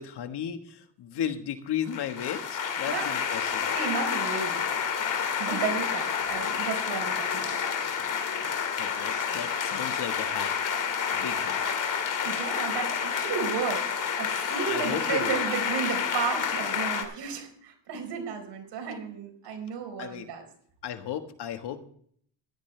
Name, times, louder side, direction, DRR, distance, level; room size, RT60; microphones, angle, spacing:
voice 1, 0.0-3.8 8.8-10.8 11.1-11.8 14.7-15.6 20.0-20.3 20.8-21.9, left 9 dB, 65° left, 8 dB, 1.6 m, -35 dB
sound 1, 1.9-17.0, left 7 dB, 45° left, 2.4 m, -29 dB
voice 2, 3.6-4.6 5.4-7.6 8.9-9.4 12.2-13.9 14.2-20.4, right 6 dB, 70° right, 3 dB, 4.5 m, -33 dB
16.5 x 12.5 x 3.3 m, 0.62 s
cardioid pair, 120°, 43 cm